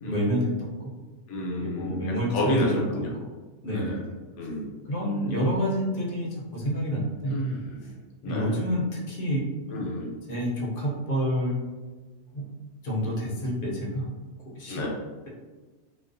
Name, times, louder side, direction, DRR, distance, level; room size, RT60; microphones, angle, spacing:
voice 1, 0.0-0.7 1.6-3.3 3.6-4.0 4.9-7.3 8.3-9.9 10.3-11.6 12.3-12.5 12.8-14.1 14.5-14.8, equal, 55° left, -4 dB, 0.8 m, -28 dB
voice 2, 1.3-3.1 3.7-4.0 4.4-4.7 7.3-7.9 8.2-8.6 9.7-10.1 14.7-15.0, left 1 dB, 85° left, -2 dB, 1.0 m, -30 dB
2.4 x 2.3 x 2.5 m, 1.3 s
omnidirectional pair, 1.2 m